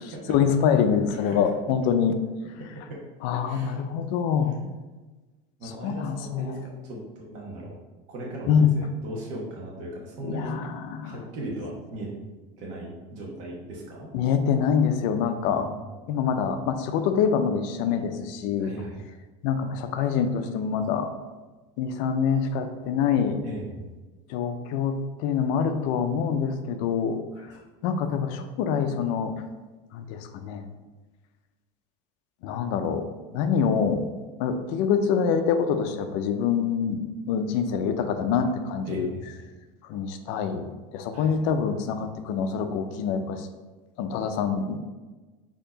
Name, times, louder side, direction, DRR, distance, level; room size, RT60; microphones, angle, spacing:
voice 1, 0.3-2.1 3.2-4.6 5.8-6.6 8.5-8.7 10.2-11.2 14.1-15.7 16.1-18.7 19.4-21.1 21.8-23.4 24.3-24.9 25.2-27.2 27.8-29.3 29.9-30.6 32.4-33.1 33.3-34.1 34.4-37.0 37.3-39.1 39.9-43.5 44.0-44.8, left 7 dB, 55° left, 8 dB, 0.4 m, -25 dB
voice 2, 2.6-3.0 3.4-3.8 5.6-7.8 8.1-10.5 11.0-12.1 12.6-14.1 15.5-15.9 18.6-19.0 23.4-23.8 27.3-27.4 38.8-39.5 41.1-41.3, right 1 dB, 50° right, -3 dB, 1.0 m, -38 dB
4.4 x 2.9 x 3.9 m, 1.2 s
supercardioid pair, 155°, 16 cm